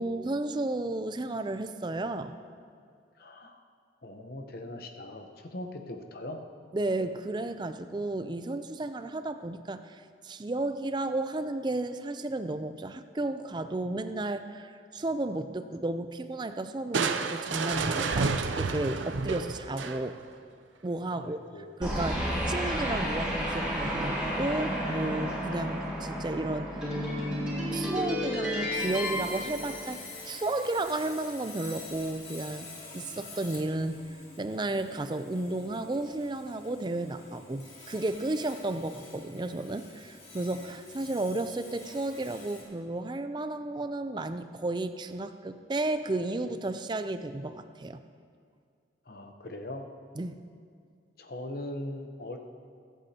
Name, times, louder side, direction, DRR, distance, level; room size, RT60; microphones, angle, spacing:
voice 1, 0.0-2.4 6.7-20.2 20.8-21.4 21.8-26.9 27.7-32.7 32.9-34.1 34.4-48.0 50.2-50.5, right 2 dB, 25° right, 10 dB, 0.4 m, -33 dB
voice 2, 3.2-3.6 4.0-6.4 21.1-21.7 49.1-49.9 51.2-52.4, left 1 dB, 50° left, 5 dB, 0.9 m, -40 dB
Crushing, 16.9-20.3, right 4 dB, 85° right, 0.6 m, -30 dB
sound 1, 21.8-30.4, equal, 5° right, 3.3 m, -32 dB
Sawing, 28.7-42.6, left 3 dB, 35° left, 2.4 m, -47 dB
23.5 x 8.3 x 2.9 m, 2.2 s
head